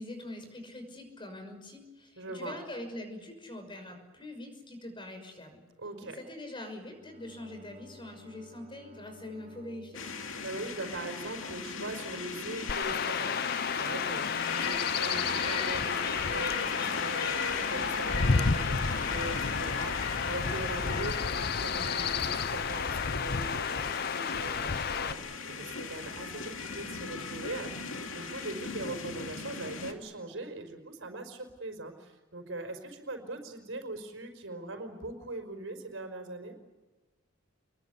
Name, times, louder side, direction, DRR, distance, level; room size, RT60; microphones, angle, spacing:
voice 1, 0.0-5.6 6.0-10.0, left 1 dB, 25° left, 6 dB, 6.1 m, -43 dB
voice 2, 2.2-2.6 5.8-6.2 10.4-36.5, right 2 dB, 70° right, 6 dB, 5.1 m, -41 dB
Bowed string instrument, 6.6-11.8, left 1 dB, 35° right, 5.1 m, -57 dB
sound 1, 9.9-29.9, left 5 dB, 70° left, 2.7 m, -37 dB
Chirp tweet / Wind / Stream, 12.7-25.1, left 5 dB, 50° left, 0.9 m, -31 dB
27.5 x 22.5 x 8.4 m, 1.2 s
head